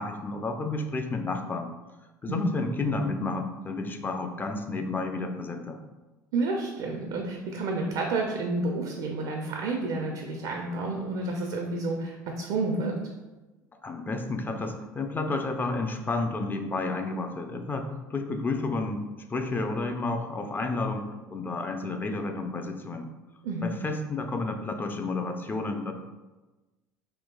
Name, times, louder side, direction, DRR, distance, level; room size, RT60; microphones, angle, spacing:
voice 1, 0.0-1.7 2.2-5.8 13.8-19.0 19.3-21.1 21.3-23.1 23.6-25.9, left 3 dB, 20° left, 5 dB, 0.3 m, -31 dB
voice 2, 6.3-13.0 23.4-23.7, right 2 dB, 55° right, 2 dB, 0.4 m, -30 dB
3.7 x 2.3 x 2.2 m, 1.1 s
figure-of-eight pair, 65°, 10 cm